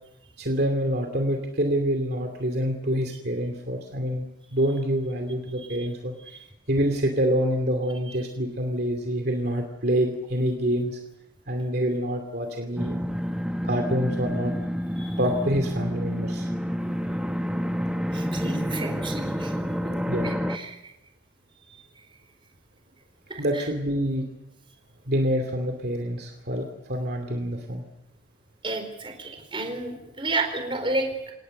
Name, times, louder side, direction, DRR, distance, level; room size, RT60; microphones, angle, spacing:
voice 1, 0.4-6.1 6.7-11.0 11.5-13.0 13.6-14.5 15.2-16.5 20.1-20.3 23.4-24.2 25.1-27.8, equal, 50° right, 4 dB, 2.7 m, -26 dB
sound 1, 12.8-20.6, equal, 5° right, 1.1 m, -29 dB
voice 2, 18.1-19.5 20.2-20.8 23.5-23.6 28.6-31.1, right 2 dB, 25° right, 5 dB, 4.4 m, -31 dB
27.5 x 18.5 x 6.7 m, 0.87 s
head